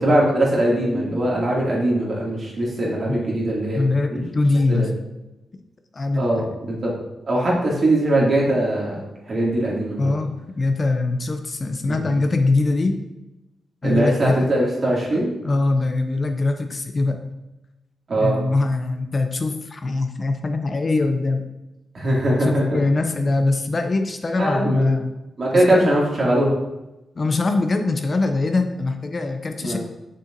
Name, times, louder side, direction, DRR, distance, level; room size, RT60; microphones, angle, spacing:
voice 1, 0.0-3.8 4.1-4.2 4.7-4.9 6.2-6.9 7.2-9.0 9.3-10.1 11.9-12.1 13.8-15.3 18.1-18.4 21.9-22.8 24.4-24.9 25.4-26.6 29.6-29.8, right 1 dB, 50° right, -4 dB, 2.3 m, -21 dB
voice 2, 3.8-4.9 5.9-6.5 10.0-13.0 13.8-14.4 15.1-17.2 18.2-21.5 22.4-25.1 25.5-25.9 27.2-29.8, left 3 dB, 40° left, 6 dB, 0.6 m, -22 dB
6.8 x 6.1 x 2.6 m, 0.98 s
cardioid pair, 80°, 0 cm